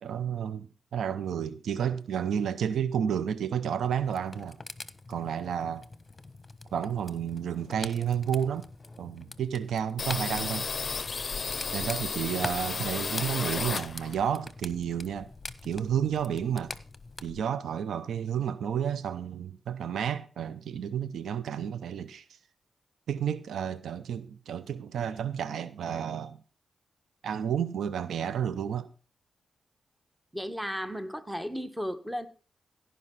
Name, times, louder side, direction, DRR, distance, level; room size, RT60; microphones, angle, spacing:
voice 1, 0.0-4.6 5.1-5.9 6.7-8.7 9.0-10.7 11.7-15.3 15.6-16.8 17.2-22.3 23.1-26.4 27.2-28.9, right 8 dB, 85° right, 0.6 m, -31 dB
sound 1, 4.0-17.2, left 3 dB, 30° left, 1.1 m, -44 dB
sound 2, 10.0-14.3 14.7-16.0 16.3-16.4 16.7-17.4, left 5 dB, 55° left, 0.5 m, -34 dB
voice 2, 30.3-32.3, equal, 5° right, 1.7 m, -34 dB
16.5 x 5.5 x 5.7 m
supercardioid pair, 45°, 0 cm